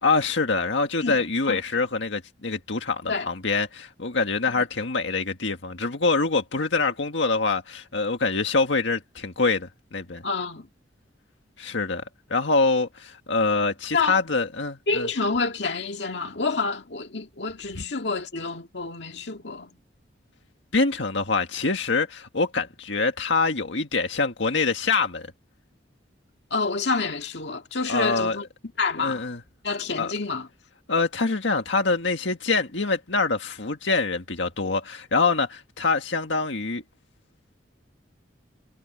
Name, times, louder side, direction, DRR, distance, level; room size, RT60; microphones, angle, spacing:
voice 1, 0.0-10.2 11.6-12.0 12.3-15.1 17.8-17.9 20.7-25.3 27.9-28.4 29.0-29.4 30.0-30.1 30.9-36.8, left 3 dB, 80° left, 1.7 m, -25 dB
voice 2, 1.0-1.6 3.1-3.3 4.6-4.7 10.2-10.7 13.9-14.2 14.9-19.7 26.5-28.4 28.8-29.3 29.6-30.5, left 4 dB, 65° left, 2.1 m, -28 dB
head